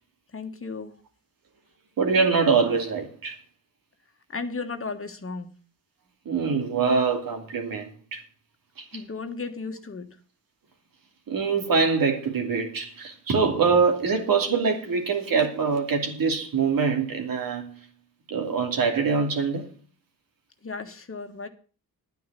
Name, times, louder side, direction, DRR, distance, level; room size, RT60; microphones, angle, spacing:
voice 1, 0.3-1.0 4.3-5.5 8.9-10.2 20.6-21.5, left 4 dB, 35° left, 1.5 m, -35 dB
voice 2, 2.0-3.4 6.2-8.2 8.8-8.9 11.3-17.8 18.3-19.6, right 5 dB, 65° right, 2.8 m, -24 dB
11.0 x 9.5 x 6.8 m
cardioid pair, 95°, 37 cm